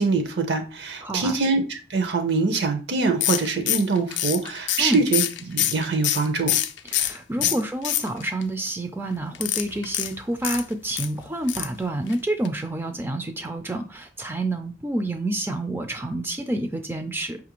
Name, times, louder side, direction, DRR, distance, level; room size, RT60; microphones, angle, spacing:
voice 1, 0.0-6.5 7.4-7.5, right 4 dB, 65° right, 6 dB, 0.6 m, -24 dB
voice 2, 1.0-1.4 4.8-5.0 6.8-17.4, right 1 dB, 10° right, 6 dB, 0.3 m, -28 dB
sound 1, 3.2-7.2 7.4-8.4 9.3-11.1 11.5-11.8 12.1-12.2 12.4-12.5, left 12 dB, 70° left, 0.4 m, -25 dB
5.4 x 2.4 x 2.9 m, 0.35 s
head